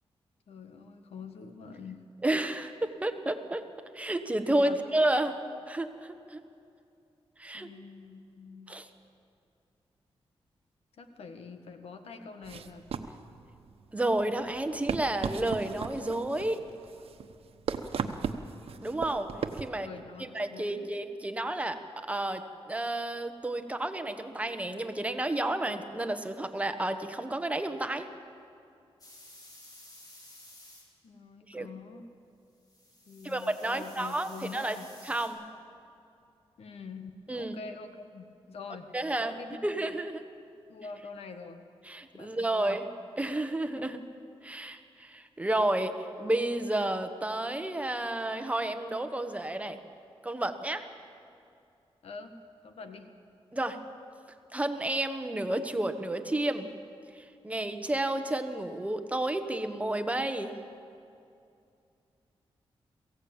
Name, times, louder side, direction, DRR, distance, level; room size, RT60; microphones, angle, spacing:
voice 1, 0.5-2.0 4.5-4.8 7.5-8.8 11.0-12.8 19.8-20.9 31.0-32.1 33.1-34.9 36.6-38.9 39.2-39.9 40.7-41.6 42.1-42.8 52.0-52.3 52.6-53.1, left 4 dB, 90° left, 7 dB, 1.6 m, -45 dB
voice 2, 2.2-3.6 3.9-5.4 5.7-6.4 7.4-7.7 8.7-8.9 13.9-16.6 18.8-19.3 19.5-19.9 20.2-28.1 31.5-31.7 33.2-34.8 35.0-35.4 37.3-37.5 38.9-39.3 39.6-40.2 41.9-42.8 43.2-44.0 44.4-49.8 50.2-50.8 53.5-53.8 54.5-56.7 57.1-60.5, right 1 dB, 15° right, 8 dB, 1.2 m, -31 dB
sound 1, 12.4-19.7, right 6 dB, 75° right, 1.1 m, -37 dB
sound 2, 29.0-30.8 32.6-35.3, left 1 dB, 40° left, 4.8 m, -53 dB
22.0 x 16.0 x 8.8 m, 2.5 s
wide cardioid pair, 130°, 10 cm